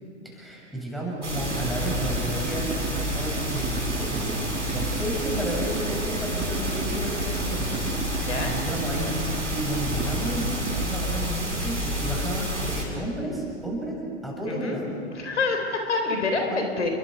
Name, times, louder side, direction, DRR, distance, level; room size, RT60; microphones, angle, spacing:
voice 1, 0.2-14.9 16.5-16.6, right 1 dB, ahead, -3 dB, 7.1 m, -32 dB
sound 1, 1.2-12.8, equal, 85° right, 6.9 m, -29 dB
Idling, 1.3-10.9, right 3 dB, 20° right, 5.8 m, -35 dB
voice 2, 8.2-8.6 14.5-14.8 15.2-16.9, left 3 dB, 75° left, 3 dB, 3.7 m, -27 dB
30.0 x 23.0 x 5.1 m, 2.3 s
figure-of-eight pair, 95°, 35 cm